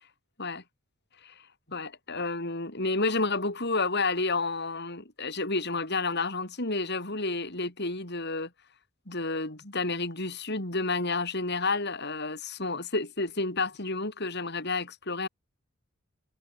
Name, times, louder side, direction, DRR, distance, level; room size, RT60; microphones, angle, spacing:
voice 1, 1.7-8.5 9.1-15.3, left 3 dB, 50° left, 5.4 m, -30 dB
head